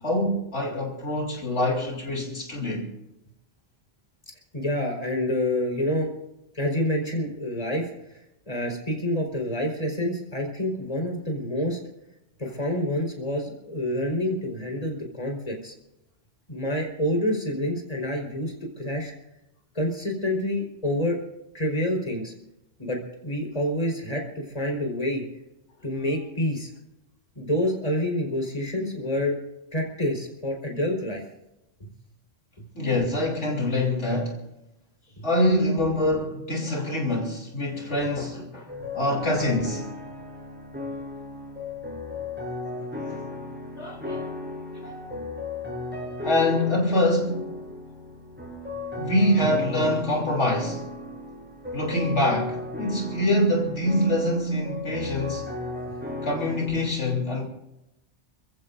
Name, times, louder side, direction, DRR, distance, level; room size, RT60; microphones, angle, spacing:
voice 1, 0.0-2.9 32.7-34.4 35.2-39.9 42.8-43.3 43.8-44.3 46.2-47.6 49.0-50.8 51.7-55.5 56.2-57.5, left 1 dB, 80° left, 3.8 m, -25 dB
voice 2, 4.3-6.1 6.5-11.8 12.4-15.7 16.5-19.1 19.7-21.2 21.5-22.3 22.8-25.2 25.8-26.7 27.3-29.4 29.7-31.2 31.8-31.9, left 1 dB, 30° left, 4.8 m, -28 dB
sound 1, 38.7-56.9, left 2 dB, 10° right, 5.9 m, -35 dB
29.0 x 15.5 x 2.7 m
omnidirectional pair, 1.2 m